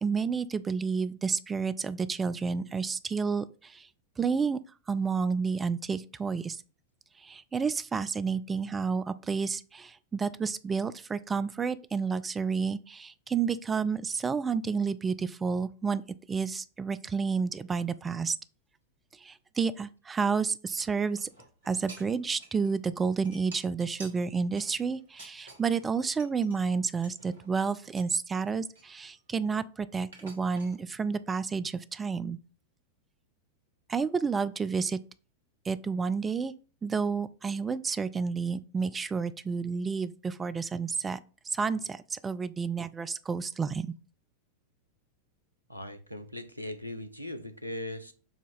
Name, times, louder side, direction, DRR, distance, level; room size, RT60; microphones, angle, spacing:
voice 1, 0.0-3.9 4.2-4.6 4.9-6.6 7.2-16.0 16.3-18.3 19.2-21.3 21.7-32.4 33.9-35.0 35.7-36.5 36.8-41.2 41.5-43.8, right 5 dB, 15° right, 0.5 m, -30 dB
sound 1, 21.1-22.7 23.0-25.9 26.2-26.6 27.0-28.1 28.5-29.6 30.1-30.8, right 3 dB, 65° right, 2.2 m, -51 dB
voice 2, 45.7-48.1, left 1 dB, 90° right, 0.8 m, -39 dB
7.1 x 2.9 x 5.5 m
figure-of-eight pair, 90°, 0 cm